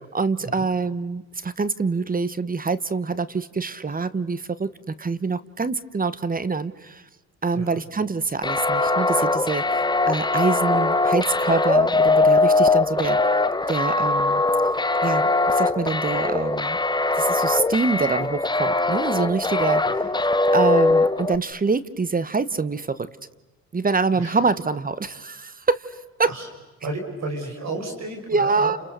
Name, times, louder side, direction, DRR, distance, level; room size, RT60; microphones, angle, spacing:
voice 1, 0.1-7.0 7.4-13.2 13.7-14.4 15.0-16.8 17.1-19.8 20.5-23.1 23.7-26.3 28.3-28.8, right 4 dB, 30° right, 16 dB, 1.1 m, -25 dB
sound 1, 8.4-21.4, left 3 dB, 15° left, 1.1 m, -21 dB
voice 2, 26.8-28.7, right 2 dB, 60° right, 3 dB, 6.1 m, -32 dB
30.0 x 29.0 x 6.8 m, 1.1 s
cardioid pair, 75°, 31 cm